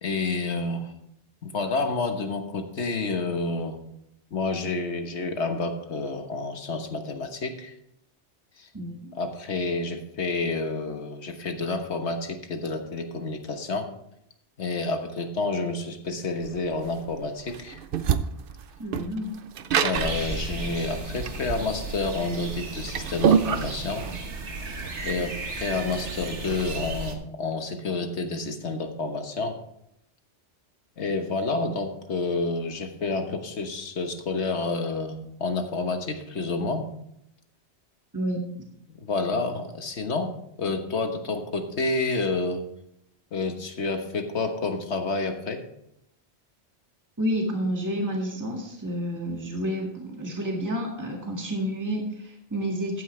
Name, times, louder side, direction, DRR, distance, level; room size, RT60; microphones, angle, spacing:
voice 1, 0.0-0.9 1.4-3.8 4.3-7.7 8.6-8.7 9.1-13.9 14.6-17.8 19.8-24.0 25.0-29.6 31.0-36.9 38.9-40.3 40.6-42.6 43.3-45.6, left 3 dB, 80° left, 6 dB, 1.5 m, -29 dB
voice 2, 8.7-9.2 18.8-19.3 38.1-38.4 47.2-53.0, equal, 15° right, 0 dB, 1.9 m, -30 dB
sound 1, 16.4-26.9, right 7 dB, 60° right, 0.8 m, -28 dB
sound 2, 19.9-27.2, right 3 dB, 85° right, 1.7 m, -35 dB
14.0 x 9.6 x 3.3 m, 0.78 s
omnidirectional pair, 1.2 m